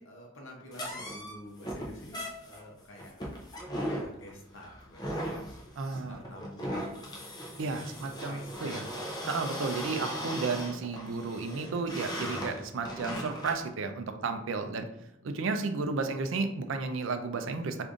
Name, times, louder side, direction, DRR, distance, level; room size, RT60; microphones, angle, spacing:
voice 1, 0.0-5.5 5.9-7.2 7.7-9.0, left 1 dB, 70° left, -1 dB, 0.7 m, -49 dB
sound 1, 0.7-13.7, equal, 20° left, 0.4 m, -38 dB
voice 2, 5.8-6.2 7.6-8.8 9.3-14.9 15.2-17.8, right 4 dB, 75° right, 7 dB, 0.4 m, -33 dB
5.0 x 2.5 x 2.4 m, 0.80 s
head